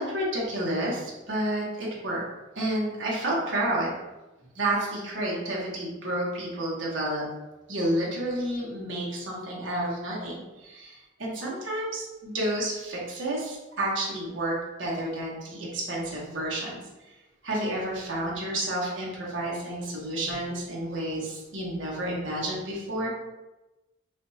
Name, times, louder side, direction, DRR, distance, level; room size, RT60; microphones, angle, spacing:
voice 1, 0.0-2.2 2.5-4.0 4.5-7.2 7.7-16.8 17.4-23.1, right 1 dB, 60° right, -4 dB, 1.1 m, -30 dB
4.9 x 2.4 x 2.7 m, 1.1 s
head